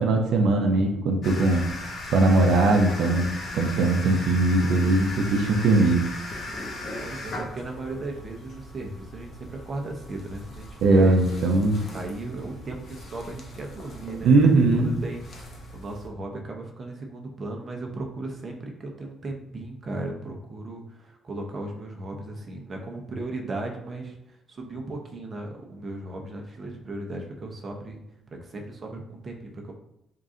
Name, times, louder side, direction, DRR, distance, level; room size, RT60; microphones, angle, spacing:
voice 1, 0.0-1.7 2.1-6.1 10.8-11.8 14.2-14.9, right 2 dB, 80° right, 2 dB, 0.5 m, -20 dB
sound 1, 1.2-16.1, left 1 dB, 55° left, 0.8 m, -39 dB
voice 2, 7.0-11.2 11.9-15.2 15.7-28.0 28.3-29.7, right 2 dB, 40° right, 1 dB, 0.7 m, -36 dB
3.7 x 2.5 x 3.7 m, 0.80 s
cardioid pair, 95°, 0 cm